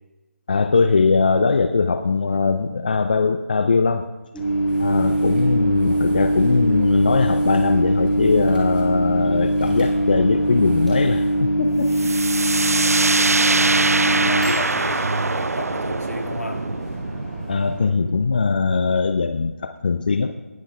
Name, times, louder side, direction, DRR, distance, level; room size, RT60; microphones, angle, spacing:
voice 1, 0.5-4.1 4.8-12.2 14.2-14.3 17.5-20.4, left 4 dB, 35° left, 9 dB, 0.4 m, -20 dB
Microwave oven, 4.3-17.8, right 1 dB, ahead, 2.0 m, -22 dB
sound 1, 4.7-11.5, right 1 dB, 40° right, 4.2 m, -38 dB
sound 2, 11.9-19.5, right 3 dB, 75° right, 0.4 m, -23 dB
voice 2, 13.5-16.7, equal, 75° left, 3 dB, 1.9 m, -31 dB
19.0 x 14.5 x 2.3 m, 1.2 s
figure-of-eight pair, 160°, 8 cm